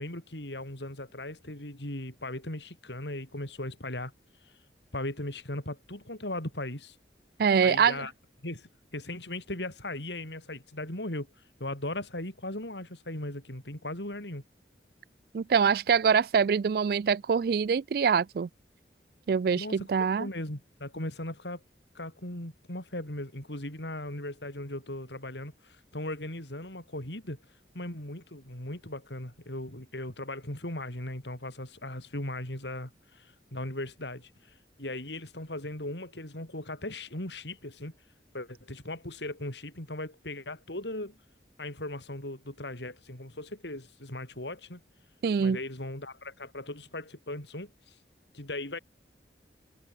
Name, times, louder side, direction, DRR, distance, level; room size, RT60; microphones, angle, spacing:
voice 1, 0.0-4.1 4.4-4.5 4.9-7.0 7.6-8.1 8.4-11.3 11.6-14.4 19.6-19.9 20.2-21.6 21.9-27.4 27.7-37.9 38.3-41.2 41.6-44.8 45.4-48.0 48.3-48.8, left 1 dB, 80° left, 5.9 m, -38 dB
voice 2, 7.4-8.0 15.3-18.5 19.3-20.3 45.2-45.6, right 6 dB, 55° right, 0.3 m, -24 dB
head